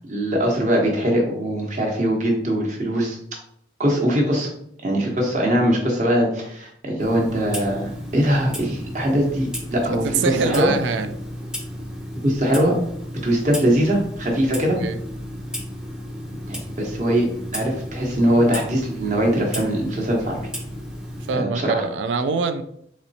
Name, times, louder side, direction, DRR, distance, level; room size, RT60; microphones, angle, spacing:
voice 1, 0.1-3.2 3.8-4.5 4.8-10.7 12.2-12.7 13.2-14.8 16.5-17.3 17.5-20.4 21.4-21.8, equal, 40° right, 0 dB, 0.9 m, -21 dB
Clock, 7.0-21.3, equal, 5° right, 0.5 m, -33 dB
voice 2, 9.9-11.1 14.8-15.0 21.3-22.6, right 5 dB, 85° right, 10 dB, 0.3 m, -24 dB
4.2 x 3.0 x 2.7 m, 0.71 s
head